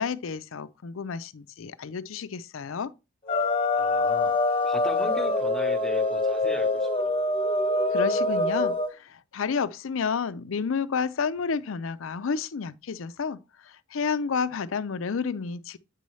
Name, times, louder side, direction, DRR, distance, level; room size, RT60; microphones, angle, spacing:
voice 1, 0.0-2.9 7.9-13.4 13.9-15.8, left 5 dB, 70° left, 0.5 m, -30 dB
sound 1, 3.3-8.9, left 2 dB, 25° left, 1.1 m, -25 dB
voice 2, 3.8-4.4 4.6-7.1, left 2 dB, ahead, 1.1 m, -38 dB
8.1 x 5.4 x 3.1 m
head